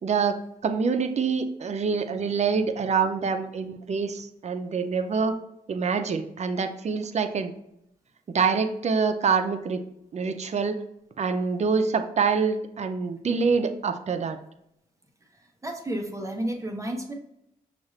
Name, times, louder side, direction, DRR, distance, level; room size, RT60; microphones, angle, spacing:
voice 1, 0.0-0.4 0.6-5.4 5.7-7.5 8.3-9.8 10.1-10.8 11.2-14.4, right 5 dB, 50° right, 7 dB, 0.5 m, -26 dB
voice 2, 15.3-17.1, right 1 dB, 20° right, 2 dB, 0.9 m, -32 dB
6.0 x 2.4 x 3.1 m, 0.79 s
cardioid pair, 75°, 15 cm